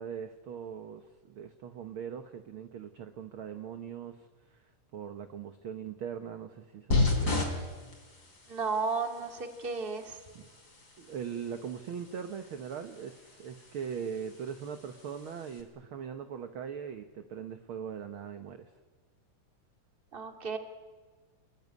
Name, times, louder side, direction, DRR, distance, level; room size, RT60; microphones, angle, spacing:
voice 1, 0.0-7.5 10.3-10.5 11.0-18.7, right 7 dB, 60° right, 8 dB, 1.4 m, -41 dB
sound 1, 6.9-15.6, left 2 dB, 30° left, 4.7 m, -36 dB
voice 2, 8.5-10.2 20.1-20.6, right 4 dB, 20° right, 5 dB, 1.9 m, -33 dB
28.0 x 22.0 x 9.6 m, 1.4 s
omnidirectional pair, 3.7 m